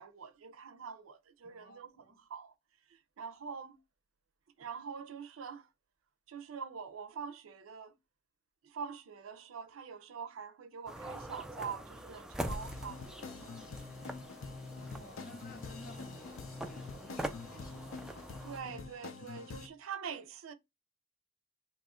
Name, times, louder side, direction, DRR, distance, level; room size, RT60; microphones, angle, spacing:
voice 1, 0.0-2.5 2.9-3.8 4.6-5.7 6.3-7.9 8.6-13.6 18.4-20.5, right 6 dB, 80° right, 0.5 m, -45 dB
voice 2, 1.4-1.8 14.9-18.1, left 1 dB, 50° left, 0.9 m, -54 dB
sound 1, 10.9-18.6, right 1 dB, 5° right, 0.3 m, -44 dB
sound 2, 12.4-19.7, left 4 dB, 70° left, 0.5 m, -46 dB
2.9 x 2.4 x 4.1 m
head